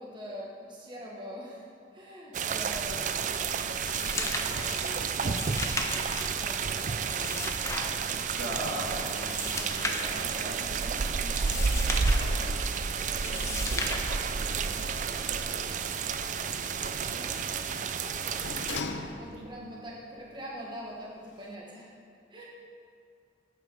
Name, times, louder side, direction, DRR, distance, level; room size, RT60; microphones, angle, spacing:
voice 1, 0.0-7.6 17.1-17.3 17.8-18.3 18.8-21.9 22.3-22.5, equal, 25° right, -4 dB, 1.2 m, -44 dB
sound 1, 2.3-18.8, right 5 dB, 45° right, 0.4 m, -31 dB
sound 2, 3.3-14.8, left 2 dB, 15° left, 0.7 m, -37 dB
voice 2, 7.9-12.6 13.3-16.0 19.3-19.7, right 1 dB, 70° right, -3 dB, 2.1 m, -41 dB
Sliding door, 15.5-19.7 20.1-20.2, left 4 dB, 75° left, 0.6 m, -41 dB
9.4 x 8.2 x 5.2 m, 2.4 s
head